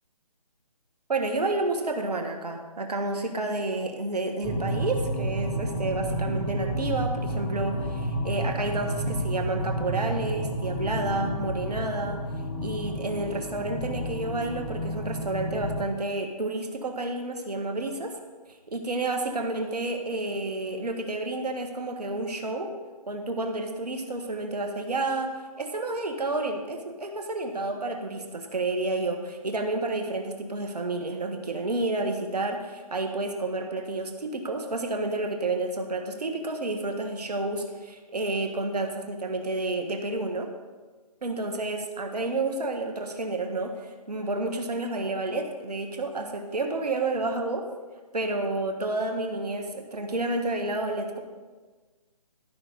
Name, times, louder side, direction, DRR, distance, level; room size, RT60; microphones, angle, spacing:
voice 1, 1.1-12.2 12.6-18.1 18.7-22.7 23.1-25.3 25.6-40.5 41.2-47.6 48.1-51.2, right 2 dB, 85° right, 4 dB, 1.5 m, -30 dB
sound 1, 4.4-15.8, equal, 15° left, 0.5 m, -31 dB
12.5 x 5.9 x 5.3 m, 1.3 s
hypercardioid pair, 155°, 20 cm